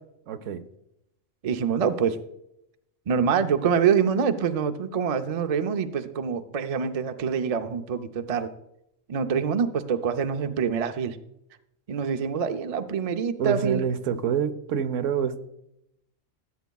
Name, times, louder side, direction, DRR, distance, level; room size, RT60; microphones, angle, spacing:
voice 1, 0.3-0.6 13.4-15.4, right 7 dB, 80° right, 11 dB, 1.0 m, -27 dB
voice 2, 1.4-2.2 3.1-8.5 9.1-11.2 11.9-13.8, right 7 dB, 50° right, 8 dB, 0.4 m, -25 dB
14.0 x 8.2 x 2.3 m, 0.81 s
omnidirectional pair, 1.3 m